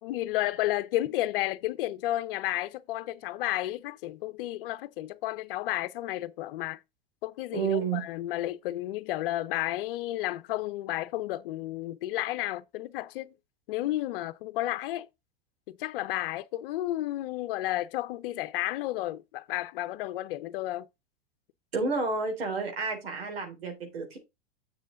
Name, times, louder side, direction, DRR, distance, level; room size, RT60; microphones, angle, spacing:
voice 1, 0.0-6.8 7.2-13.3 13.7-15.1 15.7-20.9, left 15 dB, 65° left, 0.8 m, -32 dB
voice 2, 7.5-8.0 21.7-24.2, right 4 dB, 90° right, 3.7 m, -30 dB
7.4 x 6.6 x 3.9 m
hypercardioid pair, 115°, 30 cm